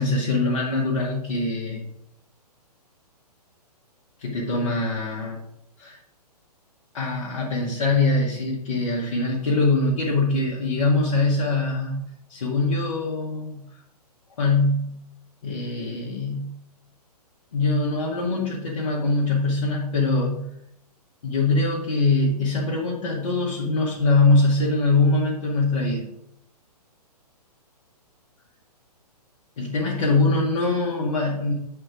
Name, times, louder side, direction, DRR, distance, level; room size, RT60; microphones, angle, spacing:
voice 1, 0.0-1.9 4.2-5.4 5.8-6.0 6.9-13.6 14.4-15.0 15.4-16.6 17.5-20.5 21.2-26.1 29.6-31.5, left 3 dB, 50° left, -5 dB, 1.3 m, -23 dB
7.6 x 3.6 x 4.8 m, 0.78 s
figure-of-eight pair, 120°, 21 cm